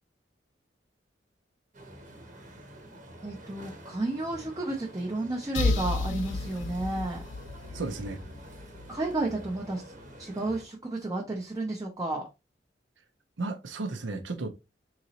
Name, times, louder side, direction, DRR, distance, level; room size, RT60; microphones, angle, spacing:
sound 1, 1.7-10.7, right 1 dB, 45° right, 0.9 m, -48 dB
voice 1, 3.2-7.2 8.9-9.9 10.2-12.2, right 2 dB, 20° right, 0.5 m, -32 dB
sound 2, 5.5-9.2, left 3 dB, 80° left, 0.5 m, -32 dB
voice 2, 7.7-8.2 13.4-14.5, right 3 dB, 85° right, 0.7 m, -34 dB
3.8 x 2.9 x 2.8 m
head